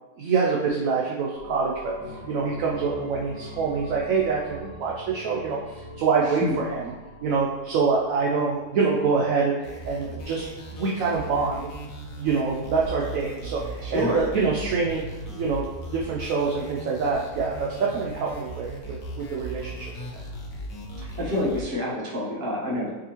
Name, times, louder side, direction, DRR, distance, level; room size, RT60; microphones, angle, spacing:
voice 1, 0.2-1.9 2.3-5.6 6.0-6.9 7.2-10.5 10.7-11.7 12.2-15.0 15.3-19.9, right 5 dB, 70° right, -3 dB, 0.8 m, -25 dB
sound 1, 1.4-10.7 11.1-11.2, left 1 dB, 35° left, 0.5 m, -43 dB
sound 2, 9.6-21.6, right 1 dB, 70° left, 1.3 m, -37 dB
voice 2, 13.8-14.3 21.0-22.9, left 1 dB, 40° right, -5 dB, 0.9 m, -27 dB
4.9 x 2.8 x 2.9 m, 1.1 s
omnidirectional pair, 1.8 m